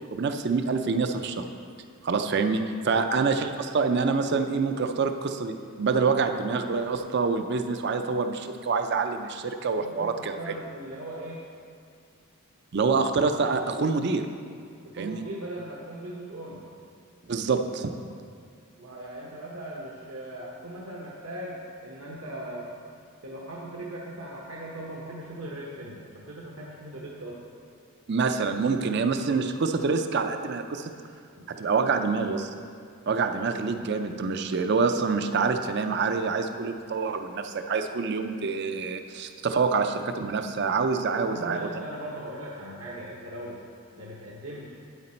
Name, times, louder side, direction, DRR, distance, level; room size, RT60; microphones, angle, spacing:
voice 1, 0.1-1.4 2.0-10.5 12.7-14.2 15.0-15.2 17.3-17.9 28.1-30.9 31.5-32.5 33.1-41.7, right 4 dB, 50° right, 7 dB, 0.4 m, -26 dB
voice 2, 9.7-11.4 14.8-16.6 18.8-22.7 23.2-27.4 31.3-31.4 41.1-43.6 44.0-44.8, right 1 dB, 75° right, -4 dB, 1.0 m, -39 dB
8.8 x 8.1 x 4.3 m, 2.2 s
head